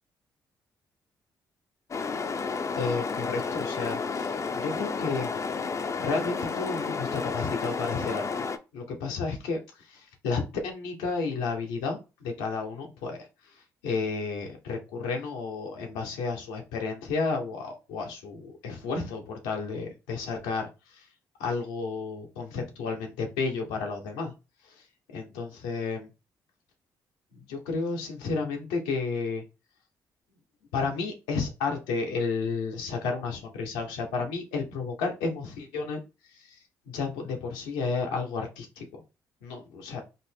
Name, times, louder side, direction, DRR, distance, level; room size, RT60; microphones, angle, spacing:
sound 1, 1.9-8.6, left 5 dB, 35° left, 0.5 m, -31 dB
voice 1, 2.8-5.4 6.0-8.5 8.7-9.6 9.9-13.2 13.8-21.0 21.4-24.3 25.1-26.1 27.5-29.4 30.7-36.0 36.4-36.5 36.9-39.0 39.4-40.0, left 4 dB, 90° left, 2 dB, 0.8 m, -32 dB
3.6 x 2.0 x 3.7 m, 0.28 s
hypercardioid pair, 50°, 9 cm